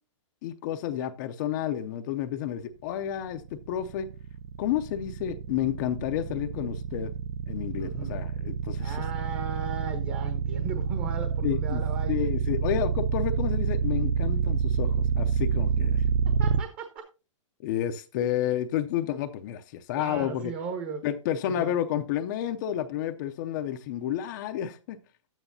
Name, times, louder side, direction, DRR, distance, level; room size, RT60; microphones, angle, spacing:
voice 1, 0.4-4.1 4.6-7.1 7.5-9.0 11.4-11.8 12.1-16.0 17.6-20.5 21.0-25.0, left 10 dB, 35° left, 0.5 m, -30 dB
sound 1, 3.3-16.6, right 7 dB, 60° right, 0.6 m, -27 dB
voice 2, 7.8-8.2 8.8-12.3 16.2-17.1 20.0-21.1 21.4-21.8, right 5 dB, 35° right, 1.2 m, -37 dB
12.0 x 9.1 x 2.7 m
hypercardioid pair, 150°, 17 cm